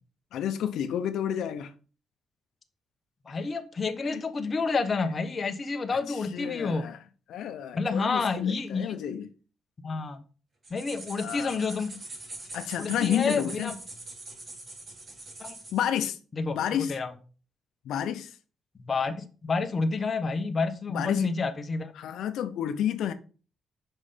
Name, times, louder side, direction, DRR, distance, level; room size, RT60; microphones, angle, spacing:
voice 1, 0.3-1.7 3.3-3.4 4.0-4.2 6.1-7.0 7.3-9.3 11.2-11.8 12.5-13.7 15.7-16.2 16.5-17.0 17.8-18.4 20.9-21.3 21.9-23.1, left 10 dB, 85° left, 0.7 m, -30 dB
voice 2, 3.3-6.9 7.7-8.9 9.8-10.2 10.7-11.9 12.8-13.7 15.4-15.6 16.4-17.1 18.8-21.9, left 4 dB, 35° left, 1.1 m, -29 dB
sound 1, 10.6-15.9, right 2 dB, 35° right, 3.6 m, -42 dB
7.4 x 5.6 x 5.1 m
cardioid pair, 115°, 0 cm